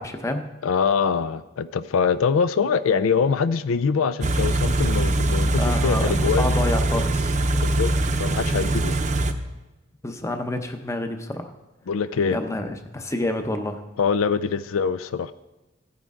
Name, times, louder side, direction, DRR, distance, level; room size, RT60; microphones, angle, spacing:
voice 1, 0.0-0.4 5.6-7.4 8.1-8.2 10.0-11.5 12.3-13.8, left 1 dB, 15° left, 6 dB, 0.7 m, -28 dB
voice 2, 0.6-6.5 7.6-7.9 8.2-9.0 11.9-12.4 14.0-15.3, left 6 dB, 85° left, 14 dB, 0.4 m, -23 dB
Car / Idling, 4.2-9.3, right 2 dB, 35° right, 0.7 m, -22 dB
15.0 x 9.5 x 3.7 m, 1.1 s
head